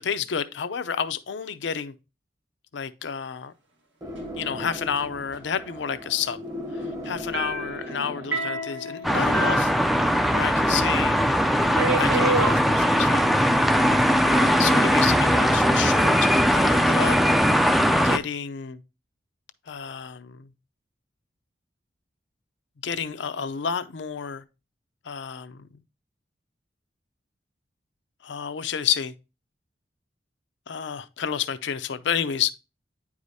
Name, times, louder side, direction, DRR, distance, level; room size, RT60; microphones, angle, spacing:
voice 1, 0.0-1.9 2.7-3.5 4.4-6.4 7.0-9.7 10.3-11.2 12.0-13.2 14.3-17.2 17.9-18.8 19.7-20.5 22.8-24.4 25.0-25.7 28.2-29.1 30.7-32.5, left 7 dB, 75° left, 0.5 m, -30 dB
sound 1, 4.0-8.6, left 1 dB, 20° right, 0.8 m, -37 dB
sound 2, 7.3-10.5 10.8-10.9 11.7-12.6 13.6-14.0, right 3 dB, 85° right, 1.7 m, -29 dB
sound 3, 9.0-18.2, equal, ahead, 0.3 m, -20 dB
9.5 x 4.8 x 2.7 m
head